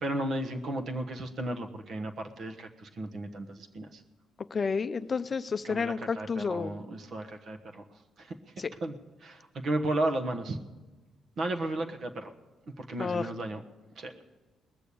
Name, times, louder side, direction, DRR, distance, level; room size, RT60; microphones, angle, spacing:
voice 1, 0.0-4.0 5.6-7.8 8.2-8.3 8.8-8.9 9.2-10.6 11.4-12.3 12.8-13.6 14.0-14.1, right 1 dB, 55° right, 5 dB, 1.2 m, -34 dB
voice 2, 4.4-6.8 8.6-8.7 13.0-13.3, left 5 dB, 40° left, 12 dB, 0.5 m, -31 dB
19.5 x 6.9 x 8.4 m, 1.3 s
cardioid pair, 90°, 0 cm